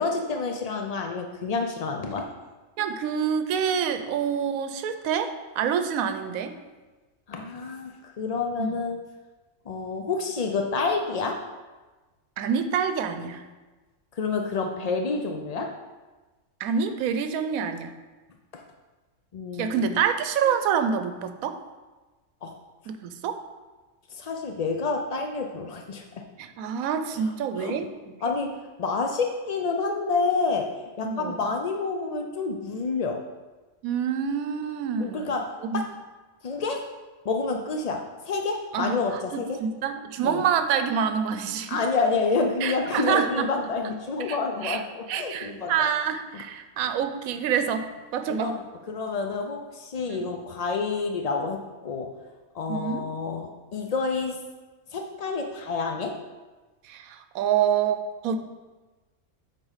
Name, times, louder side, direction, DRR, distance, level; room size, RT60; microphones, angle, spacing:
voice 1, 0.0-2.3 7.3-9.0 9.7-11.4 14.2-15.7 18.5-18.6 19.3-20.0 22.4-22.5 24.1-26.2 27.6-27.8 28.2-28.5 28.8-30.7 31.0-33.2 35.0-35.4 35.7-35.8 36.4-36.8 37.2-39.6 40.2-40.4 41.7-45.9 46.3-46.4 48.3-48.6 48.9-52.1 52.5-54.4 54.9-56.1, left 4 dB, 70° left, 3 dB, 0.3 m, -28 dB
voice 2, 2.8-6.5 8.6-8.8 12.4-13.4 16.6-17.9 19.6-21.6 22.9-23.4 26.4-28.1 31.0-31.4 33.8-35.4 35.6-35.8 38.7-41.8 42.6-43.5 44.3-44.4 44.6-44.8 45.1-48.5 50.1-50.3 52.7-53.1 56.8-58.4, right 7 dB, 80° right, 9 dB, 1.1 m, -27 dB
7.9 x 4.2 x 5.6 m, 1.2 s
omnidirectional pair, 1.5 m